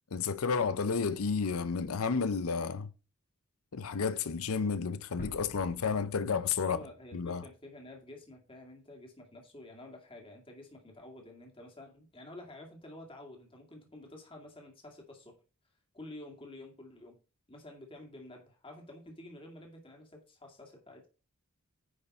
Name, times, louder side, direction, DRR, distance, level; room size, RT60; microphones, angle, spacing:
voice 1, 0.1-2.9 3.7-6.8 7.1-7.4, left 5 dB, 75° left, 0.6 m, -31 dB
sound 1, 5.2-8.0, equal, 40° left, 1.4 m, -51 dB
voice 2, 6.6-15.4 15.9-17.2 17.5-21.1, left 1 dB, 25° left, 2.2 m, -50 dB
9.9 x 5.3 x 4.2 m
head